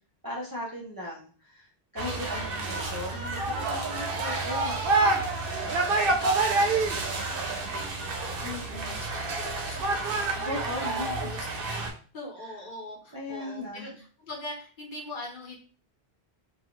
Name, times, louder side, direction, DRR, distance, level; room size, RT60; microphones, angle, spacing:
voice 1, 0.2-4.9 8.4-9.1 10.4-11.2 13.1-13.9, left 2 dB, 30° right, -4 dB, 0.4 m, -37 dB
sound 1, 2.0-11.9, right 3 dB, 65° right, 0.7 m, -28 dB
voice 2, 2.1-2.5 4.1-4.4 5.6-10.7 11.2-15.6, left 1 dB, 55° left, -1 dB, 0.9 m, -43 dB
2.4 x 2.3 x 3.0 m, 0.42 s
omnidirectional pair, 1.0 m